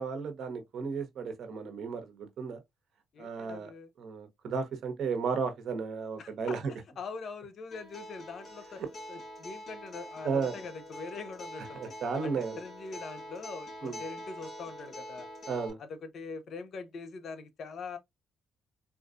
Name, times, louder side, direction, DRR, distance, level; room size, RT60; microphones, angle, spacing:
voice 1, 0.0-2.6 3.2-3.7 4.0-6.6 10.2-10.5 11.7-12.6 13.8-14.0 15.5-15.8, right 5 dB, 65° right, 1.0 m, -34 dB
voice 2, 3.1-3.9 6.2-8.8 9.1-11.9 12.2-15.3 15.8-18.0, left 4 dB, 60° left, 0.7 m, -43 dB
Acoustic guitar, 7.7-15.7, equal, 40° left, 2.3 m, -45 dB
4.1 x 2.4 x 2.4 m
cardioid pair, 90°, 0 cm